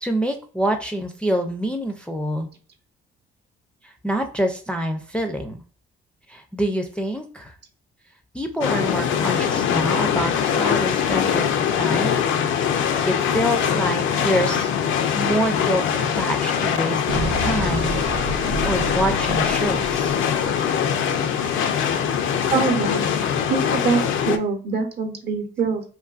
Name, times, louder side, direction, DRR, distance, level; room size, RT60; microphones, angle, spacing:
voice 1, 0.0-2.5 3.8-5.6 6.3-7.5 8.3-12.2 13.0-14.7 15.2-15.8 16.2-18.0 18.6-20.2, right 1 dB, 5° left, 3 dB, 0.4 m, -26 dB
sound 1, 8.6-24.4, left 8 dB, 80° left, 0.4 m, -22 dB
Explosion, 17.1-21.2, right 3 dB, 85° right, 0.4 m, -31 dB
voice 2, 22.5-23.1 23.5-25.8, right 5 dB, 55° right, 4 dB, 0.8 m, -24 dB
2.5 x 2.5 x 2.3 m, 0.41 s
cardioid pair, 90°, 20 cm